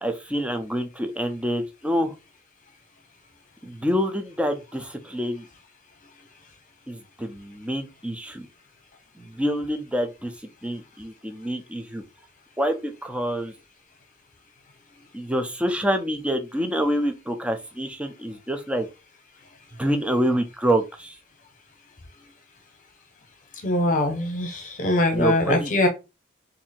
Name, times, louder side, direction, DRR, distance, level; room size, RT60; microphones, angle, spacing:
voice 1, 0.0-2.1 3.6-5.5 6.9-8.5 9.2-10.3 10.6-12.0 12.6-13.5 15.1-18.9 19.8-21.2 25.1-25.7, equal, 5° right, 0.5 m, -27 dB
voice 2, 23.6-25.9, left 1 dB, 40° left, 1.0 m, -22 dB
2.7 x 2.7 x 4.2 m
head